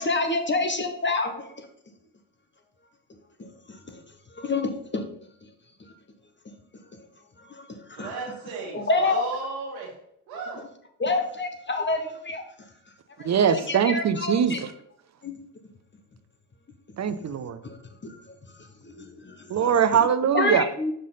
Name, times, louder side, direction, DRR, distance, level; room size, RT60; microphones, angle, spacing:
voice 1, 0.0-1.7 3.4-4.0 4.3-5.0 7.5-8.1 8.7-9.2 11.0-12.4 13.2-14.6 15.2-15.4 17.6-17.8 18.0-18.2 18.8-19.7 20.3-20.9, left 3 dB, 25° left, 6 dB, 1.0 m, -28 dB
voice 2, 8.0-10.0 10.3-10.6, right 4 dB, 85° right, -4 dB, 1.2 m, -35 dB
voice 3, 13.2-14.7 17.0-17.6 19.5-20.7, right 8 dB, 40° right, 11 dB, 0.7 m, -22 dB
6.4 x 3.8 x 4.1 m, 0.71 s
supercardioid pair, 55°, 44 cm